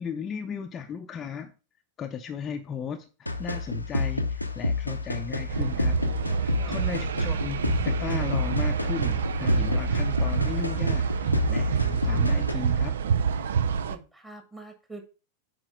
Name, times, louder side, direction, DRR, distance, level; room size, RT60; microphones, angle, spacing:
voice 1, 0.0-1.5 2.0-6.0 6.4-12.9, left 7 dB, 25° left, 4 dB, 0.7 m, -35 dB
sound 1, 3.3-12.5, left 3 dB, 85° left, 0.7 m, -29 dB
sound 2, 5.5-14.0, right 7 dB, 65° right, 0.4 m, -27 dB
voice 2, 6.3-6.7 13.9-15.0, right 2 dB, 10° right, 6 dB, 1.6 m, -45 dB
8.9 x 5.0 x 3.5 m, 0.33 s
figure-of-eight pair, 90°, 0 cm